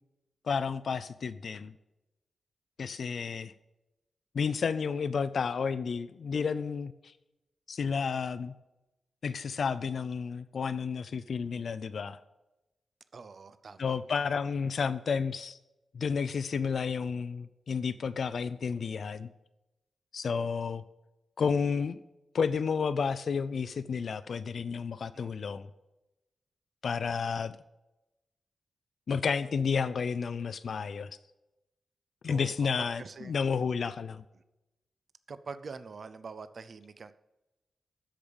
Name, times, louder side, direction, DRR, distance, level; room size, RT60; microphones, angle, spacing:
voice 1, 0.4-1.7 2.8-3.5 4.3-7.1 7.7-8.5 9.2-12.2 13.8-15.6 15.9-19.3 20.1-20.8 21.4-22.0 22.3-25.7 26.8-27.6 29.1-31.2 32.2-34.2, left 6 dB, 55° left, 13 dB, 0.4 m, -31 dB
voice 2, 13.1-14.0 25.1-25.5 32.3-32.7 33.0-33.3 35.3-37.1, right 4 dB, 45° right, 13 dB, 0.5 m, -45 dB
13.0 x 5.1 x 6.9 m, 0.98 s
wide cardioid pair, 180°, 0 cm